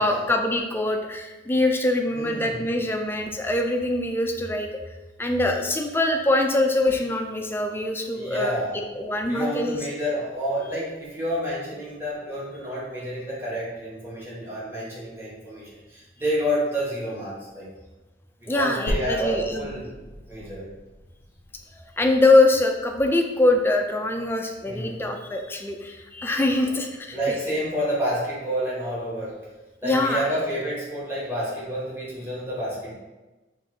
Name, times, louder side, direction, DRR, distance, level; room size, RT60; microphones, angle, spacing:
voice 1, 0.0-4.7 5.2-9.8 18.5-19.8 22.0-27.4 29.8-30.3, left 2 dB, 10° left, 3 dB, 0.3 m, -23 dB
voice 2, 2.1-2.7 8.1-8.8 9.2-17.7 18.4-19.9 20.3-20.7 24.7-25.0 27.1-29.4 29.8-32.9, equal, 15° right, -8 dB, 1.1 m, -29 dB
sound 1, 18.9-22.9 23.4-23.5 24.1-24.2 24.5-24.6 25.5-25.6, left 1 dB, 80° left, 0.5 m, -36 dB
4.9 x 2.6 x 2.7 m, 1.1 s
head